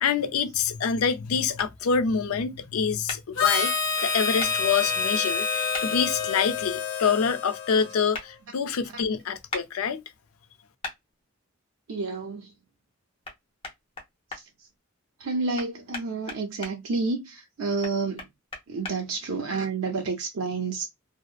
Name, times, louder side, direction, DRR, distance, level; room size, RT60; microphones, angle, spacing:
voice 1, 0.0-10.0, left 6 dB, 85° left, 0.4 m, -26 dB
sound 1, 1.6-1.7 3.1-3.2 4.4-4.5 5.7-5.9 8.1-8.3 9.5-9.7 10.8-11.0 13.2-13.4 13.6-14.4 15.6-16.7 17.8-19.0, left 3 dB, 25° left, 0.7 m, -36 dB
Harmonica, 3.4-8.1, left 6 dB, 70° left, 0.8 m, -27 dB
voice 2, 11.9-12.5 14.3-14.4 15.2-18.2 18.7-20.9, right 4 dB, 85° right, 0.6 m, -29 dB
2.7 x 2.0 x 2.3 m
head